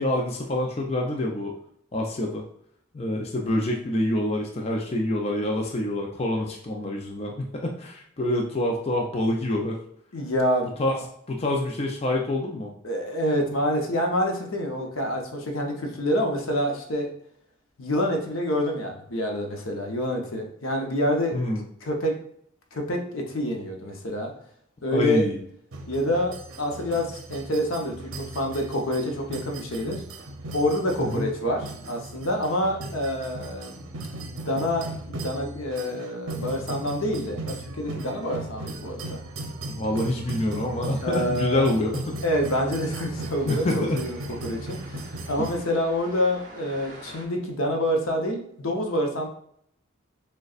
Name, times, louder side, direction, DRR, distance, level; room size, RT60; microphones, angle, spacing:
voice 1, 0.0-1.5 1.9-2.4 2.9-9.8 10.8-12.7 21.3-21.6 24.9-25.4 31.0-31.3 39.7-42.2 43.4-44.0 45.4-45.5, left 1 dB, 30° left, 1 dB, 0.4 m, -26 dB
voice 2, 10.1-10.7 12.8-17.1 17.8-21.4 21.8-22.1 22.7-24.3 24.8-25.2 25.9-30.0 30.5-39.2 41.0-41.7 42.2-43.7 43.9-49.3, equal, 85° left, 2 dB, 0.8 m, -27 dB
sound 1, 25.7-45.6, right 2 dB, 85° right, 0.7 m, -37 dB
sound 2, 42.1-47.3, right 2 dB, 40° right, 0.7 m, -47 dB
6.3 x 2.2 x 2.4 m, 0.68 s
head